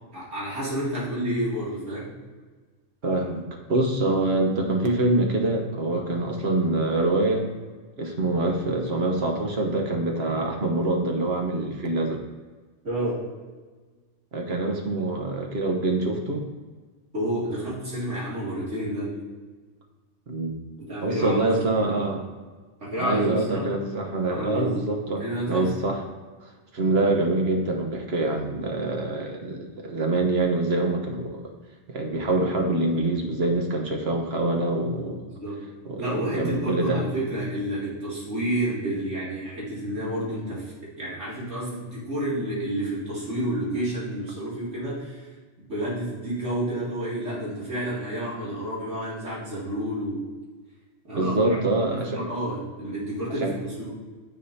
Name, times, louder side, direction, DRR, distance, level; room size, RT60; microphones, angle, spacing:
voice 1, 0.1-2.1 12.8-13.2 17.1-19.2 20.8-22.1 22.8-23.7 24.3-24.8 25.2-25.7 35.2-35.6 36.0-45.2 45.7-50.2 51.0-53.9, right 1 dB, 85° right, -8 dB, 3.0 m, -30 dB
voice 2, 3.0-7.5 8.0-12.2 14.3-16.5 20.3-20.6 21.0-22.2 23.0-26.0 26.4-31.4 31.9-35.2 35.8-37.0 51.1-52.2 53.4-53.5, right 2 dB, 60° right, 2 dB, 1.3 m, -25 dB
9.8 x 6.6 x 2.8 m, 1.4 s
omnidirectional pair, 1.2 m